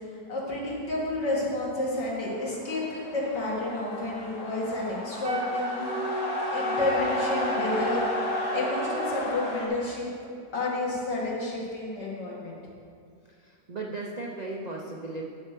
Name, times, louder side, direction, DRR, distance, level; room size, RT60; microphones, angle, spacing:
voice 1, 0.1-5.9 6.5-8.1 8.5-10.1 10.5-12.6, left 2 dB, 90° left, -5 dB, 2.6 m, -30 dB
sound 1, 2.0-9.7, left 1 dB, 50° left, 1.6 m, -33 dB
Wind instrument woodwind instrument, 5.2-9.2, right 1 dB, 45° right, 0.9 m, -33 dB
voice 2, 13.3-15.2, right 2 dB, 75° right, -2 dB, 0.3 m, -36 dB
10.0 x 4.4 x 6.6 m, 2.4 s
omnidirectional pair, 1.8 m